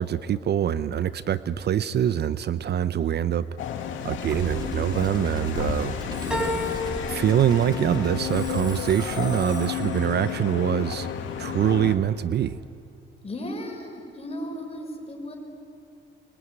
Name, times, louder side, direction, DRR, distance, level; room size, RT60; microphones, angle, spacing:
voice 1, 0.0-3.5 4.0-6.0 7.1-11.1 11.4-12.6, right 9 dB, 55° right, 15 dB, 0.8 m, -24 dB
sound 1, 3.6-12.0, left 8 dB, 75° left, 2.3 m, -32 dB
Musical instrument, 4.3-11.6, right 2 dB, 20° right, 2.7 m, -38 dB
voice 2, 6.2-6.5 13.2-15.4, left 1 dB, 30° left, 2 dB, 6.4 m, -36 dB
sound 2, 6.3-11.1 11.5-12.2 12.6-12.7, left 2 dB, 5° right, 4.7 m, -35 dB
25.0 x 23.0 x 9.6 m, 2.5 s
cardioid pair, 90°, 20 cm